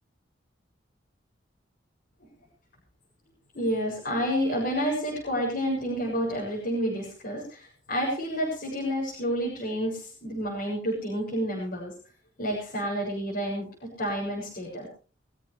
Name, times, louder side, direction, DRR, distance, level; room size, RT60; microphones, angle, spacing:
voice 1, 3.5-11.9 12.4-14.9, equal, 55° left, -5 dB, 7.5 m, -29 dB
22.5 x 15.5 x 3.4 m, 0.37 s
head